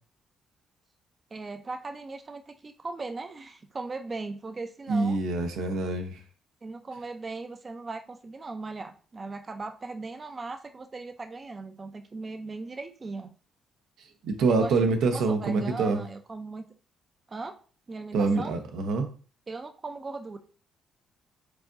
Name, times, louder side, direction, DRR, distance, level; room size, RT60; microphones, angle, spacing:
voice 1, 1.3-5.2 6.6-13.3 14.5-16.6 17.3-17.6 17.9-18.5 19.5-20.4, right 3 dB, 30° right, 7 dB, 0.4 m, -38 dB
voice 2, 4.9-6.2 14.2-16.0 18.1-19.1, right 3 dB, 85° right, 5 dB, 0.7 m, -25 dB
4.8 x 3.7 x 2.5 m, 0.40 s
cardioid pair, 90°, 0 cm